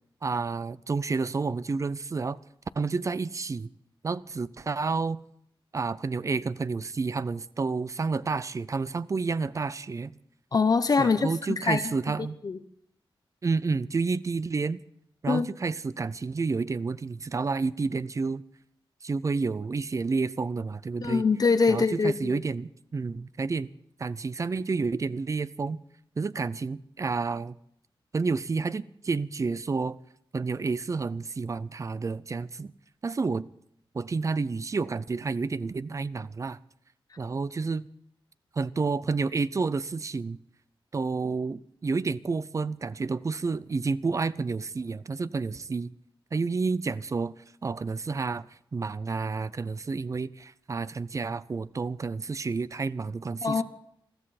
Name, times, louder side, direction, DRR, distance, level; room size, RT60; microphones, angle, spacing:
voice 1, 0.2-2.4 2.8-3.7 4.0-5.2 5.7-10.1 11.0-12.4 13.4-14.8 15.2-18.4 19.0-21.2 21.7-23.7 24.0-25.8 26.2-27.5 28.1-30.0 30.3-32.7 33.0-33.4 33.9-36.6 37.2-37.9 38.5-40.4 40.9-45.9 46.3-47.3 47.6-48.5 48.7-53.6, right 4 dB, 35° right, 0.5 m, -30 dB
voice 2, 10.5-11.3 11.6-11.8 12.4-12.6 15.3-15.5 21.0-22.4 53.4-53.6, left 4 dB, 40° left, 0.8 m, -23 dB
21.5 x 14.0 x 4.2 m
wide cardioid pair, 150°, 9 cm